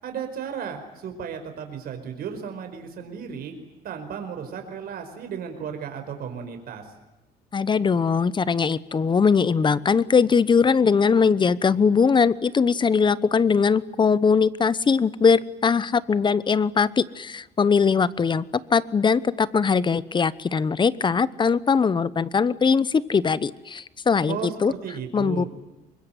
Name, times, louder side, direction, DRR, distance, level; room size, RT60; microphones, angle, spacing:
voice 1, 0.0-3.5 3.8-6.9 24.3-25.5, right 7 dB, 65° right, 6 dB, 5.0 m, -34 dB
voice 2, 7.5-18.4 18.7-24.7 25.1-25.4, left 5 dB, 30° left, 18 dB, 0.9 m, -21 dB
24.5 x 21.5 x 9.2 m, 1.0 s
cardioid pair, 110°, 17 cm